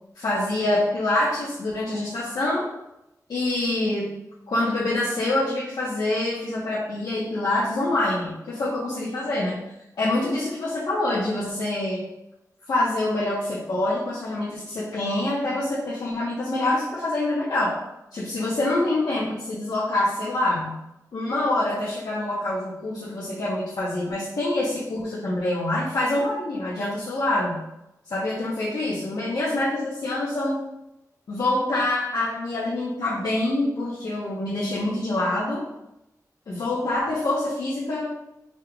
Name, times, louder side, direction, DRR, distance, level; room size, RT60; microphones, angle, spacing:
voice 1, 0.1-2.7 3.3-4.1 4.5-9.6 10.0-12.1 12.7-17.8 18.1-20.8 21.1-27.6 28.1-30.6 31.3-35.6 36.5-38.1, left 2 dB, 85° left, -7 dB, 0.9 m, -25 dB
5.2 x 3.6 x 2.3 m, 0.88 s
wide cardioid pair, 95°, 7 cm